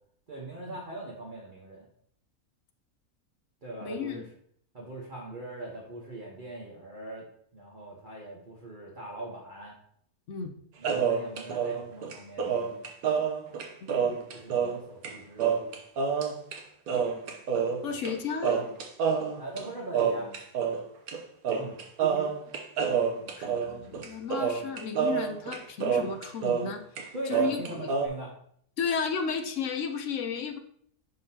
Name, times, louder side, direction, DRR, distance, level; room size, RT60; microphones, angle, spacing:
voice 1, 0.3-1.9 3.6-4.2 4.7-7.3 7.5-9.7 10.8-12.8 14.3-15.5 17.8-18.0 19.4-20.3 21.5-22.3 27.1-28.3, right 2 dB, 35° right, -4 dB, 1.2 m, -41 dB
voice 2, 3.8-4.2 10.3-10.5 17.8-18.6 23.2-26.8 27.3-27.9 28.8-30.6, left 6 dB, 65° left, 6 dB, 0.9 m, -33 dB
sound 1, 10.8-14.8 15.0-15.1 15.4-16.6 16.9-18.1 18.4-20.8 21.1-21.2 21.4-26.7 27.0-28.1, right 6 dB, 80° right, 1.4 m, -28 dB
11.0 x 3.9 x 2.8 m, 0.64 s
omnidirectional pair, 1.5 m